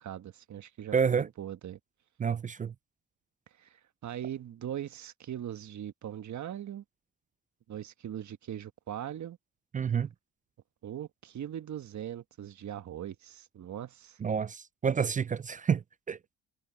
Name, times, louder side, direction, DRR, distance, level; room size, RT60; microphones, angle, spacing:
voice 1, 0.0-1.8 3.6-6.8 7.7-9.4 10.8-14.2, right 10 dB, 50° right, 1.4 m, -40 dB
voice 2, 0.9-1.3 2.2-2.7 9.7-10.1 14.2-16.2, right 6 dB, 25° right, 0.3 m, -29 dB
supercardioid pair, 65°, 35 cm